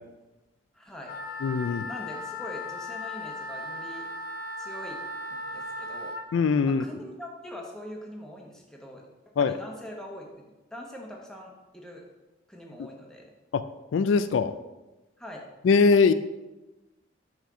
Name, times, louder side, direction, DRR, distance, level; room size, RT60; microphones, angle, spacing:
voice 1, 0.7-1.1 1.8-4.1 4.6-5.0 5.3-6.2 6.6-9.0 9.4-10.4 10.7-12.0 12.5-13.3 15.2-15.4, equal, 5° left, -1 dB, 1.0 m, -42 dB
Wind instrument woodwind instrument, 1.0-6.2, left 2 dB, 50° left, 0.7 m, -37 dB
voice 2, 1.4-1.9 6.3-6.8 9.4-9.5 13.5-13.6 13.9-14.5 15.6-16.1, left 5 dB, 85° left, 12 dB, 0.4 m, -21 dB
5.7 x 4.3 x 6.1 m, 1.1 s
head